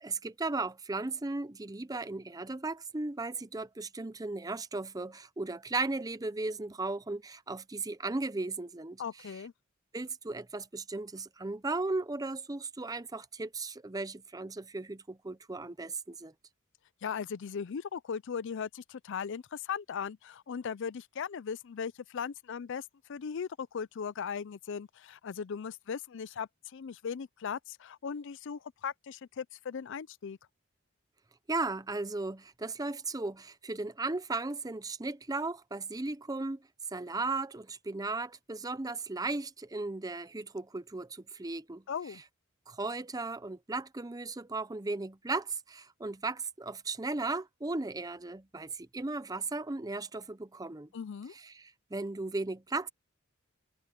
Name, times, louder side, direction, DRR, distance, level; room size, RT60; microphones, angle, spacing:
voice 1, 0.0-9.4 9.9-16.3 31.5-36.6 36.9-41.8 42.7-50.9 51.3-52.9, right 3 dB, 15° right, 0.6 m, -36 dB
voice 2, 9.0-9.5 17.0-30.4 41.9-42.2 50.9-51.3, left 6 dB, 60° left, 0.4 m, -38 dB
head